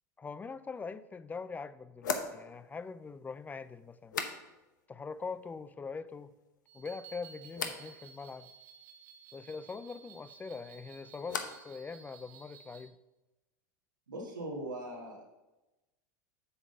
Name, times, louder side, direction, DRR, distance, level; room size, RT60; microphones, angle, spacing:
voice 1, 0.2-4.2 4.9-6.3 6.7-8.5 9.3-13.0, left 4 dB, 15° left, 0.4 m, -43 dB
sound 1, 0.8-0.9 2.0-4.9 5.1-5.7 6.1-6.7 7.5-7.9 10.3-11.7 12.0-12.6, left 5 dB, 80° left, 0.8 m, -41 dB
sound 2, 6.7-12.9, right 8 dB, 60° right, 1.2 m, -55 dB
voice 2, 14.1-15.3, right 1 dB, 90° right, 2.1 m, -40 dB
7.8 x 3.8 x 6.5 m
hypercardioid pair, 85°, 10 cm